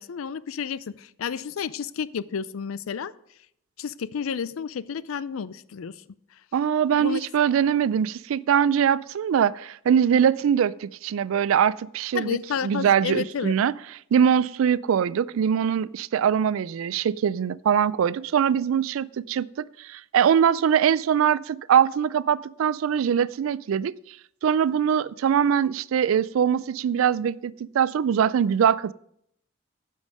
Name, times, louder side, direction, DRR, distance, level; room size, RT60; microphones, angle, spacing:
voice 1, 0.0-3.1 3.8-6.0 7.0-7.3 12.1-13.5, left 6 dB, 85° left, 0.4 m, -31 dB
voice 2, 6.5-12.4 12.6-13.7 14.1-23.9 24.4-28.9, right 8 dB, 75° right, 0.3 m, -22 dB
10.5 x 5.5 x 6.2 m
head